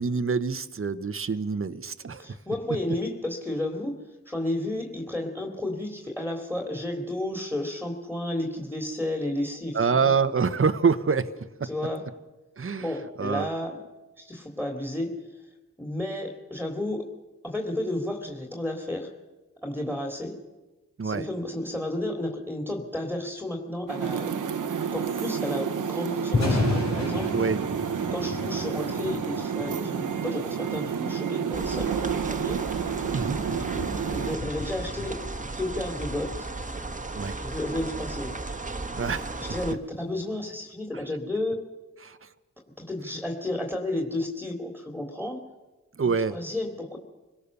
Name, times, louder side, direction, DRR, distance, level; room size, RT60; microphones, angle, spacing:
voice 1, 0.0-2.3 2.7-2.8 9.7-11.3 11.6-11.7 12.6-13.5 21.0-21.3 27.3-27.6 33.1-33.4 37.1-37.4 38.9-39.4 42.0-42.3 46.0-46.4, right 5 dB, 40° right, 11 dB, 1.2 m, -26 dB
voice 2, 2.2-10.1 11.7-12.1 12.8-13.8 14.2-15.5 15.8-17.1 17.4-19.1 19.6-20.4 21.0-24.3 24.9-27.3 28.1-32.6 34.1-35.2 35.6-36.5 37.4-38.4 39.4-41.6 42.8-45.4 46.0-47.0, left 1 dB, 5° left, 3 dB, 3.5 m, -32 dB
sound 1, 23.9-34.4, right 7 dB, 75° right, 1.3 m, -30 dB
Thunder, 26.2-40.3, left 3 dB, 55° left, 5.8 m, -35 dB
sound 2, 31.5-39.7, right 2 dB, 25° right, 1.6 m, -35 dB
25.0 x 17.0 x 6.9 m, 1.1 s
cardioid pair, 50°, 32 cm